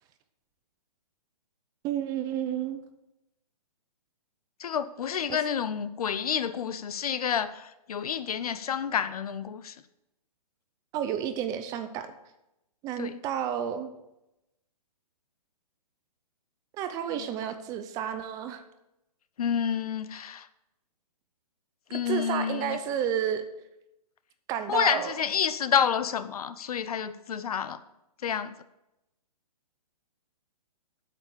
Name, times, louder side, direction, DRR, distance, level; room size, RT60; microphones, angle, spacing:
voice 1, 1.8-2.8 5.3-5.4 10.9-12.1 12.8-13.9 16.7-18.6 21.9-23.4 24.5-25.2, right 9 dB, 15° right, 0.6 m, -31 dB
voice 2, 4.6-9.7 13.0-13.1 17.2-17.3 19.4-20.5 21.9-22.8 24.7-27.8 28.2-28.5, left 8 dB, 65° left, 0.8 m, -29 dB
8.9 x 7.5 x 6.8 m
hypercardioid pair, 145°, 20 cm